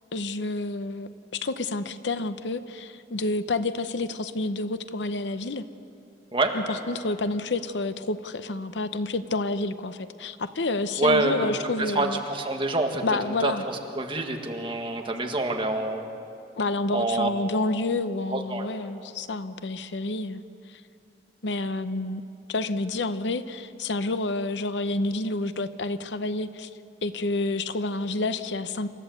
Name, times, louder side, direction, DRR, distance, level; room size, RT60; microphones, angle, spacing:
voice 1, 0.1-5.6 6.5-12.2 13.0-13.6 16.6-20.4 20.7-20.8 21.4-22.2 22.5-26.7 27.0-28.9, left 2 dB, 75° left, 11 dB, 0.8 m, -29 dB
voice 2, 11.0-11.5 12.0-13.0 13.4-13.5 14.0-16.1 16.9-17.3 18.3-18.7, right 2 dB, 30° right, 3 dB, 1.8 m, -26 dB
27.5 x 14.0 x 8.0 m, 2.6 s
head